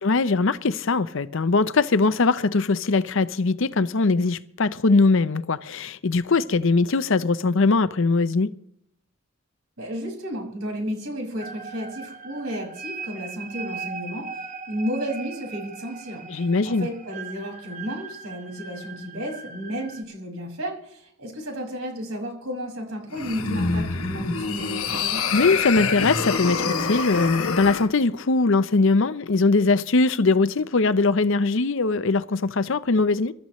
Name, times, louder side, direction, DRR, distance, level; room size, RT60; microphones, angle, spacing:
voice 1, 0.0-8.5 16.3-16.9 25.3-33.3, left 3 dB, 65° left, 0.7 m, -21 dB
voice 2, 9.8-25.2, equal, 80° right, 5.8 m, -33 dB
sound 1, 11.4-20.0, right 5 dB, 35° right, 1.2 m, -39 dB
sound 2, 23.1-27.9, left 4 dB, 80° left, 1.2 m, -26 dB
26.0 x 13.5 x 3.1 m
head